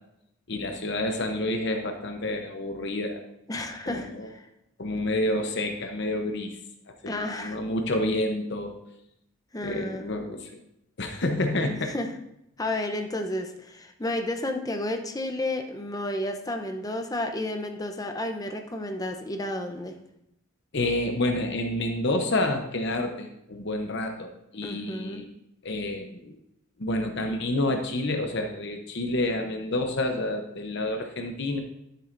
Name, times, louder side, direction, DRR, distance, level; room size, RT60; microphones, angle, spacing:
voice 1, 0.5-3.2 3.9-4.3 4.8-6.6 7.0-8.8 9.6-10.6 11.0-11.9 20.7-25.3 25.6-26.4 26.8-31.6, left 1 dB, 55° left, 5 dB, 0.8 m, -29 dB
voice 2, 3.5-4.5 7.1-7.6 9.5-10.0 11.7-12.1 12.6-20.0 24.6-25.2, left 1 dB, 15° left, 5 dB, 0.7 m, -32 dB
11.5 x 7.7 x 2.6 m, 0.82 s
head